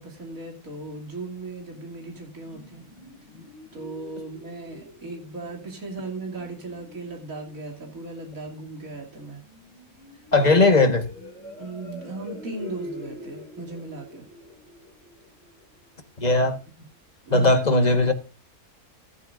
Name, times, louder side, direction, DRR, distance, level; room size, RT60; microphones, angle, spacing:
voice 1, 0.0-2.9 3.7-9.4 10.4-10.5 11.6-14.3 16.8-16.9 17.3-17.6, right 3 dB, 60° right, 3.2 m, -37 dB
sound 1, 2.4-16.0, left 1 dB, 15° right, 7.2 m, -45 dB
voice 2, 10.3-11.0 16.2-16.6 17.3-18.1, left 2 dB, 30° left, 1.6 m, -18 dB
14.5 x 12.5 x 2.6 m
omnidirectional pair, 1.6 m